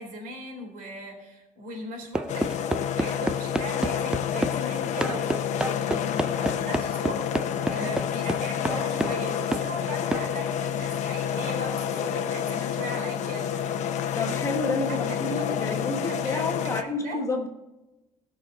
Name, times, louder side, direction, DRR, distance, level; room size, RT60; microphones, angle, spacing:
voice 1, 0.0-7.2 7.7-13.7 14.9-17.2, right 1 dB, 85° right, 3.8 m, -39 dB
sound 1, 2.1-4.6 5.0-9.2 9.5-9.7 10.1-10.3, right 2 dB, 5° right, 0.3 m, -29 dB
sound 2, 2.3-16.8, left 9 dB, 55° left, 0.8 m, -29 dB
voice 2, 14.1-17.5, left 2 dB, 20° left, 1.3 m, -30 dB
17.0 x 6.3 x 4.0 m
cardioid pair, 175°, 14 cm